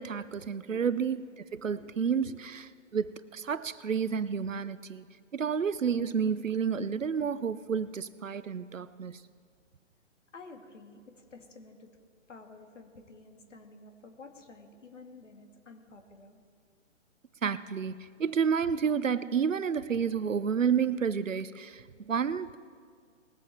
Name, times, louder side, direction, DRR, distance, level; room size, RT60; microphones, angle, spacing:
voice 1, 0.0-2.6 2.9-5.0 5.3-9.2 17.4-22.6, right 6 dB, 90° right, 0.7 m, -30 dB
voice 2, 10.3-12.0 12.3-16.4, left 3 dB, 70° left, 2.1 m, -51 dB
20.0 x 7.8 x 4.5 m
figure-of-eight pair, 130°, 37 cm